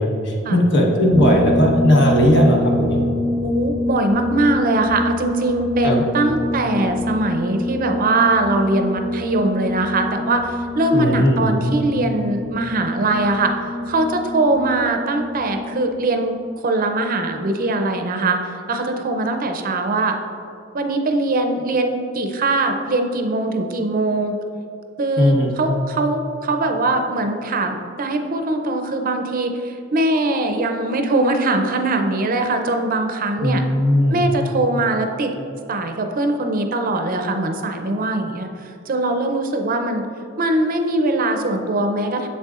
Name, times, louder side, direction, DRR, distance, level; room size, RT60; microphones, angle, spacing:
voice 1, 0.0-3.0 5.8-6.0 10.9-11.4 25.2-25.5 33.4-34.2, equal, 60° left, -1 dB, 1.1 m, -17 dB
sound 1, 1.1-15.9, left 2 dB, 10° left, 1.3 m, -26 dB
voice 2, 3.4-13.5 13.9-16.4 16.6-20.2 20.7-24.4 25.0-33.6 34.1-35.3 35.7-40.1 40.4-42.3, right 2 dB, 45° right, 5 dB, 0.5 m, -21 dB
7.5 x 6.7 x 2.4 m, 2.7 s
head